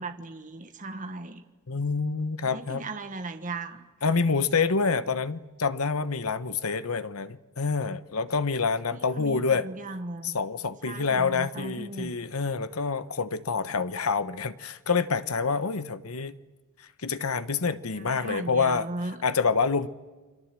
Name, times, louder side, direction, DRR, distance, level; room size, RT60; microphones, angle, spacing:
voice 1, 0.0-1.4 2.4-3.9 8.9-10.4 10.8-12.2 18.0-19.2, right 2 dB, 35° right, 1.4 m, -37 dB
voice 2, 1.7-2.9 4.0-9.7 10.2-16.4 17.0-18.9 19.2-19.9, left 4 dB, 80° left, 1.1 m, -27 dB
29.5 x 23.5 x 7.6 m
head